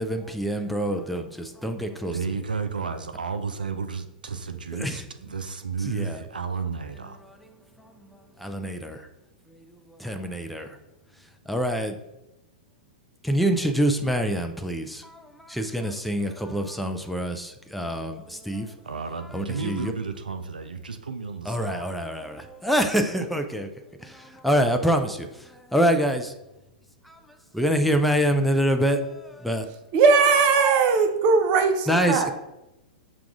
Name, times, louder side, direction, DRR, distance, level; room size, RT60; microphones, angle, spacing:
voice 1, 0.0-2.2 4.7-5.0 5.8-6.2 7.2-7.4 7.8-8.1 8.4-9.1 9.5-10.8 11.5-12.0 13.2-18.8 19.3-19.9 21.4-23.7 24.0-26.3 27.0-29.6 31.9-32.3, equal, ahead, 0.4 m, -26 dB
voice 2, 2.1-7.2 18.8-21.9, right 5 dB, 80° right, 0.4 m, -32 dB
voice 3, 29.9-32.3, right 5 dB, 40° right, 0.6 m, -19 dB
5.9 x 2.4 x 3.5 m
figure-of-eight pair, 105°, 5 cm